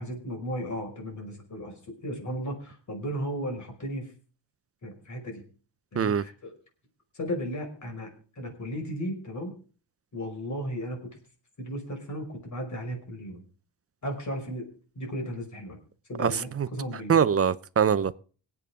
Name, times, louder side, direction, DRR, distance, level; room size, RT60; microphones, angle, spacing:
voice 1, 0.0-1.7 2.0-4.1 4.8-5.4 5.9-6.5 7.1-9.5 10.1-11.2 11.6-13.4 14.0-14.7 15.0-15.8 16.1-17.2, equal, 40° left, 5.6 m, -35 dB
voice 2, 16.2-16.7 17.1-18.2, right 7 dB, 30° right, 0.6 m, -23 dB
25.5 x 8.6 x 3.7 m
wide cardioid pair, 150°, 44 cm